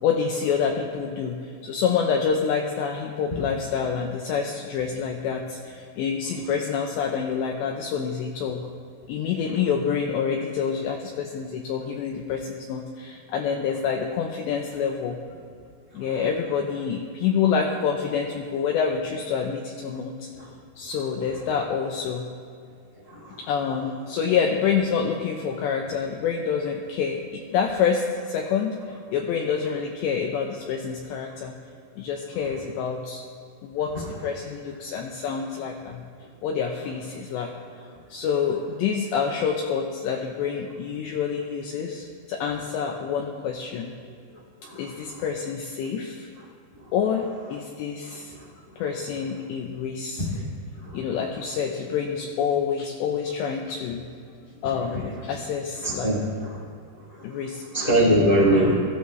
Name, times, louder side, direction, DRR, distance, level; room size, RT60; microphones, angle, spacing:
voice 1, 0.0-1.4 1.6-8.6 9.1-15.2 15.9-20.3 20.8-22.3 23.5-28.8 29.1-31.5 32.0-33.2 33.6-36.1 36.4-37.5 38.1-43.9 44.8-46.3 46.9-48.3 48.8-50.3 50.9-54.1 54.6-56.1 57.2-57.6 58.5-58.7, left 6 dB, 80° left, 1 dB, 2.7 m, -27 dB
voice 2, 55.8-56.6 57.7-58.7, right 1 dB, 15° left, -4 dB, 1.4 m, -20 dB
21.0 x 14.5 x 3.2 m, 2.3 s
omnidirectional pair, 5.8 m